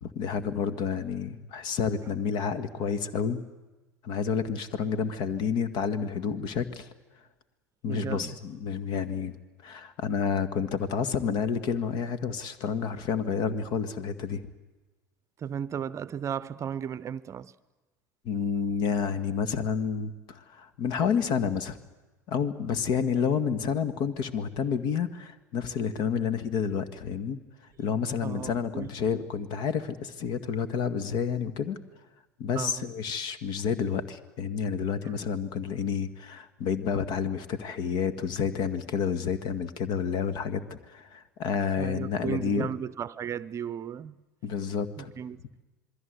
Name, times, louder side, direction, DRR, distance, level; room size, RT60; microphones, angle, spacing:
voice 1, 0.0-3.4 4.0-6.9 7.8-9.4 9.6-14.4 18.3-21.8 22.3-27.4 27.8-31.8 32.4-42.7 44.4-45.1, left 6 dB, 50° left, 1.9 m, -29 dB
voice 2, 7.9-8.3 15.4-17.5 28.2-28.9 32.5-32.8 35.0-35.2 41.8-44.2 45.0-45.4, right 8 dB, 30° right, 0.7 m, -35 dB
27.0 x 22.0 x 8.1 m
hypercardioid pair, 75°, 9 cm